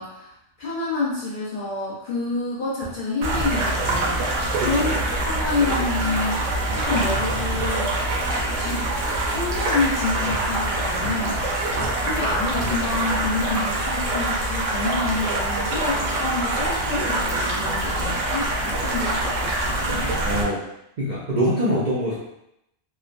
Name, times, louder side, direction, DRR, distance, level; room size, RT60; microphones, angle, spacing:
voice 1, 0.0-7.9 8.5-8.8 9.3-20.1, left 3 dB, 55° left, -6 dB, 0.6 m, -28 dB
sound 1, 2.8-3.0 3.3-3.6 3.9-4.3 6.7-8.1 8.5-8.6 10.2-13.9 14.2-14.3, right 1 dB, 85° left, 1.0 m, -37 dB
sound 2, 3.2-20.4, right 2 dB, 80° right, 1.0 m, -25 dB
voice 2, 4.6-5.0 20.2-20.6 21.0-22.2, equal, 55° right, -8 dB, 0.5 m, -24 dB
3.0 x 2.1 x 2.5 m, 0.82 s
omnidirectional pair, 1.3 m